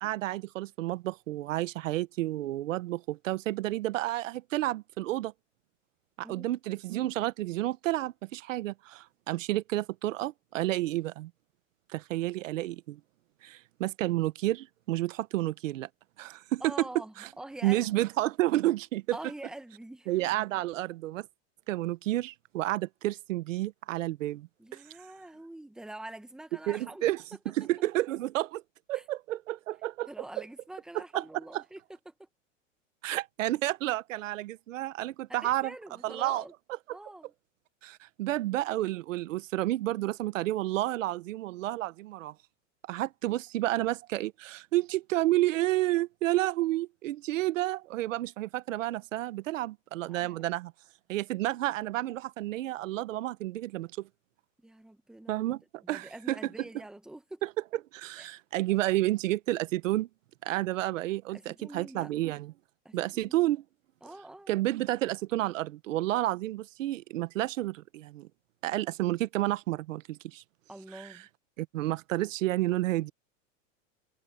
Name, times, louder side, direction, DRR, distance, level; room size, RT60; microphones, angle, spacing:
voice 1, 0.0-5.3 6.2-11.3 11.9-13.0 13.4-15.9 16.2-16.7 17.2-17.3 17.6-19.2 20.1-21.3 21.7-24.8 26.7-27.2 27.5-28.6 28.9-30.1 30.9-31.2 31.5-31.6 33.0-35.7 36.0-36.4 37.8-42.3 42.9-50.7 51.1-54.1 55.3-55.6 55.9-56.4 57.4-57.5 57.9-60.1 60.4-62.5 62.9-63.6 64.5-68.3 68.6-70.4 70.9-71.1 71.6-73.1, right 16 dB, 80° right, 1.1 m, -30 dB
voice 2, 16.6-18.1 19.1-20.1 24.6-27.1 28.9-29.0 30.1-32.3 35.3-36.5 36.9-37.3 50.1-50.5 54.6-55.4 55.8-57.4 58.2-58.3 61.3-62.1 62.8-63.4 64.0-64.6 70.7-71.3, right 1 dB, ahead, 1.3 m, -45 dB
supercardioid pair, 155°, 38 cm